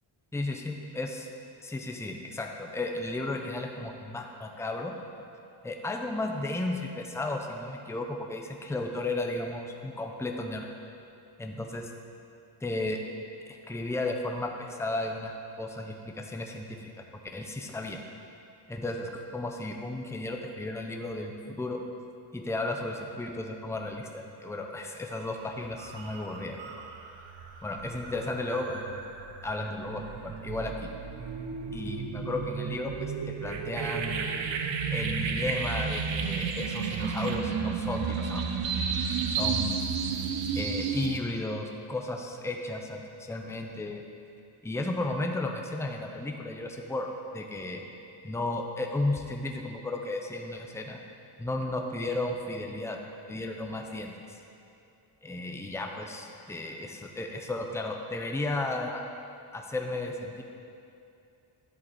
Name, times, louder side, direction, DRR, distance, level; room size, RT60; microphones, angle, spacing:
voice 1, 0.3-1.2 1.6-4.9 5.6-10.7 11.4-11.9 12.6-13.0 13.5-16.9 17.3-18.0 18.7-21.8 22.3-26.8 27.6-29.0 29.4-30.9 31.7-33.1 33.4-34.3 34.9-38.4 39.3-39.8 40.5-44.0 44.6-47.8 48.2-51.0 51.4-53.0 53.3-54.1 55.2-59.0 59.5-60.4, left 2 dB, 5° left, 2 dB, 0.6 m, -34 dB
sound 1, 25.1-25.3 25.7-41.2, right 5 dB, 65° right, 0.9 m, -33 dB
10.5 x 7.7 x 4.2 m, 2.6 s
cardioid pair, 130°, 48 cm